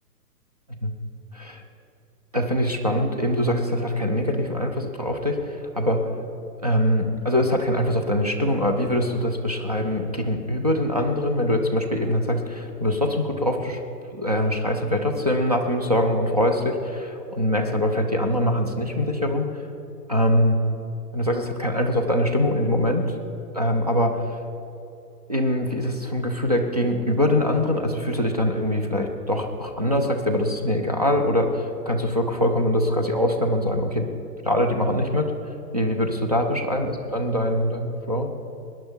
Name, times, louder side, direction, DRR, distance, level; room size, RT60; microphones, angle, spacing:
voice 1, 2.3-6.1 6.6-13.8 14.1-19.5 20.1-20.6 21.1-23.1 23.5-24.2 25.3-34.1 34.4-35.3 35.7-38.3, left 1 dB, 25° right, 3 dB, 0.5 m, -23 dB
20.5 x 10.5 x 4.4 m, 2.9 s
hypercardioid pair, 180°, 48 cm